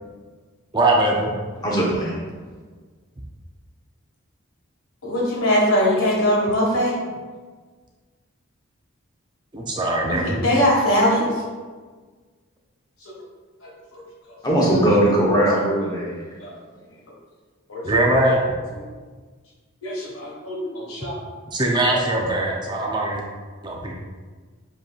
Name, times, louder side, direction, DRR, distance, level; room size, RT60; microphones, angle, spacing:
voice 1, 0.7-1.3 9.5-10.4 17.8-18.4 21.5-23.2 23.6-23.9, right 1 dB, 20° right, -1 dB, 0.5 m, -21 dB
voice 2, 1.6-2.1 14.4-16.2, right 1 dB, 20° left, -5 dB, 0.9 m, -19 dB
voice 3, 5.0-6.9 10.1-11.2 13.0-13.1 13.6-14.0 15.5-15.6 16.4-16.5 17.7-18.1 18.8-18.9 19.8-21.2 22.0-22.2, equal, 85° left, -3 dB, 1.4 m, -22 dB
7.4 x 3.0 x 2.3 m, 1.4 s
head